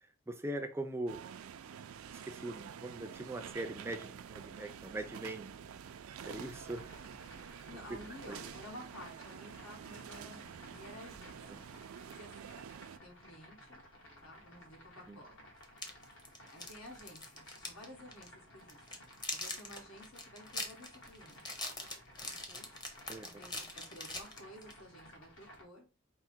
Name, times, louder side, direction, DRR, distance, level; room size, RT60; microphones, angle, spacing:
voice 1, 0.3-1.2 2.1-5.5 6.2-6.9 8.3-8.5 11.5-11.6 15.1-15.2 23.1-23.3, right 1 dB, 10° right, 0.4 m, -41 dB
sound 1, 1.1-13.0, right 8 dB, 80° right, 0.4 m, -49 dB
sound 2, 6.2-25.6, left 1 dB, 65° left, 1.3 m, -57 dB
voice 2, 7.7-11.6 12.1-12.5 13.0-13.8 14.2-15.4 16.5-19.0 19.3-21.6 22.2-22.7 23.2-25.9, left 1 dB, 85° left, 1.6 m, -53 dB
sound 3, 15.6-17.9 18.1-18.3 18.7-24.8, left 2 dB, 20° left, 0.8 m, -42 dB
4.6 x 2.1 x 4.2 m
head